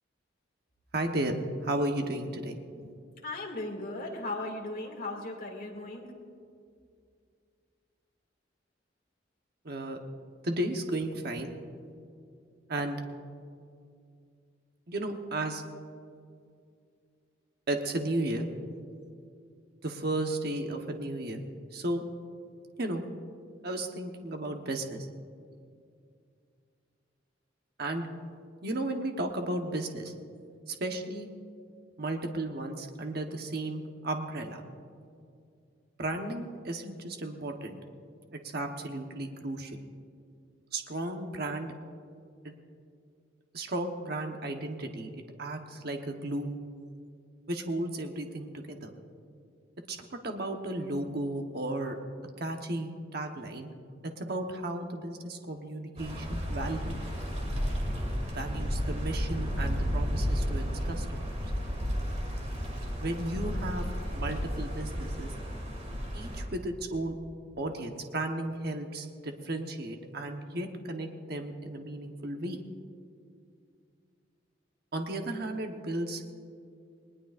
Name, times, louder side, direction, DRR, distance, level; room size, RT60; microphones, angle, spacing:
voice 1, 0.9-2.9 9.6-10.0 10.4-11.5 12.7-13.0 14.9-15.6 17.7-18.5 19.8-21.4 21.7-22.0 22.8-23.0 23.6-25.1 27.8-28.1 28.6-30.1 30.7-31.3 32.0-34.6 36.0-37.8 38.3-39.8 40.7-41.7 42.4-42.5 43.5-46.6 47.5-48.9 49.9-50.0 50.2-51.9 52.4-53.7 54.0-57.0 58.3-61.5 63.0-65.3 66.1-67.2 67.6-72.6 74.9-76.2, right 1 dB, 55° right, 4 dB, 1.1 m, -34 dB
voice 2, 3.2-6.1, left 2 dB, 50° left, 0 dB, 2.4 m, -37 dB
sound 1, 56.0-66.4, equal, 35° right, 2.7 m, -32 dB
20.0 x 20.0 x 2.5 m, 2.3 s
head